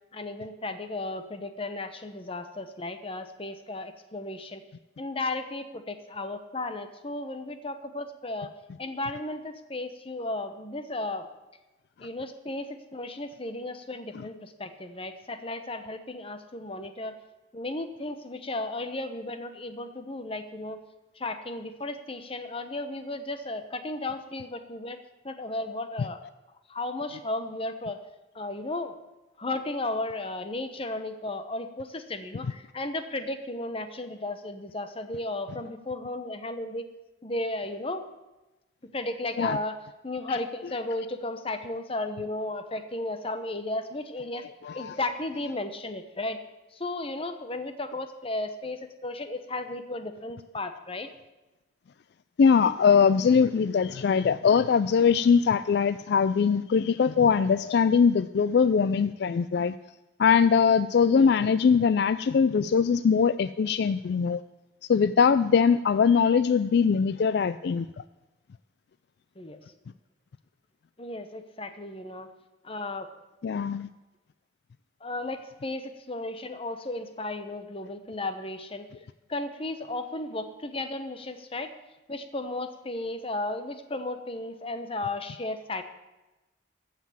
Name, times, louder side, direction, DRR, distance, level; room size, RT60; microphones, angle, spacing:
voice 1, 0.1-4.6 5.0-8.5 8.8-11.3 12.0-17.2 17.5-20.8 21.2-25.0 25.2-26.2 26.7-28.0 28.3-28.9 29.4-36.9 37.2-38.0 38.9-39.8 40.0-44.4 44.7-46.4 46.7-51.1 61.1-61.3 66.0-66.1 69.4-69.6 71.0-72.3 72.6-73.1 75.0-78.9 79.3-81.7 82.1-85.8, left 2 dB, 30° left, 9 dB, 1.0 m, -34 dB
voice 2, 44.6-45.0 52.4-59.8 60.2-64.4 64.9-67.9 73.4-73.9, left 6 dB, 60° left, 14 dB, 0.3 m, -22 dB
14.5 x 6.0 x 8.5 m, 1.1 s
head